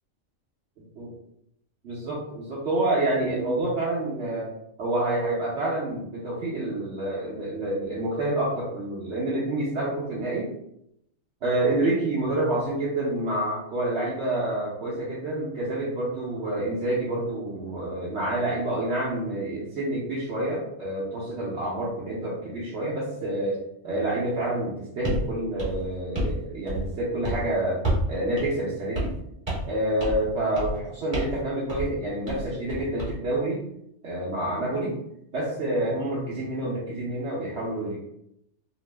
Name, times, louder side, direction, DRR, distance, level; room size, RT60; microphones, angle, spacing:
voice 1, 1.8-4.5 4.8-10.5 11.4-23.6 23.8-29.1 29.6-33.6 34.0-35.0 35.3-38.0, right 1 dB, 60° right, -7 dB, 0.9 m, -28 dB
sound 1, 25.0-25.3 25.6-26.4 26.7-27.0 27.2-27.4 27.8-28.1 28.4-28.5 28.9-29.2 29.5-29.7 30.0-30.3 30.6-30.8 31.1-31.4 31.7-31.9 32.3-33.1, right 1 dB, 20° right, 1.1 m, -29 dB
2.9 x 2.0 x 3.2 m, 0.77 s
omnidirectional pair, 1.3 m